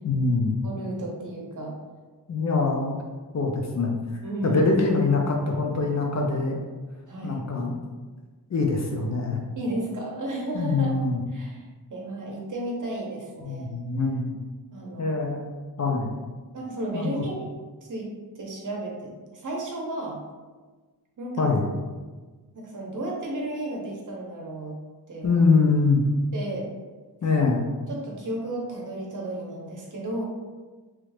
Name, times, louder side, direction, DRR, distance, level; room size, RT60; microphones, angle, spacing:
voice 1, 0.0-0.5 2.3-3.0 3.3-4.0 4.4-6.6 7.2-7.7 8.5-9.4 10.5-11.2 13.4-14.3 15.0-15.4 15.8-16.1 16.9-17.2 21.4-21.7 25.2-26.0 27.2-27.6, left 3 dB, 45° left, 1 dB, 0.4 m, -23 dB
voice 2, 0.6-1.7 4.2-4.6 7.1-7.4 9.5-10.9 11.3-13.7 14.7-15.2 16.5-17.5 17.8-18.1 18.4-20.2 21.2-21.5 22.5-24.8 25.1-25.5 26.3-26.7 27.9-30.3, right 1 dB, 50° right, -2 dB, 0.8 m, -33 dB
3.1 x 2.4 x 3.2 m, 1.3 s
wide cardioid pair, 130°, 40 cm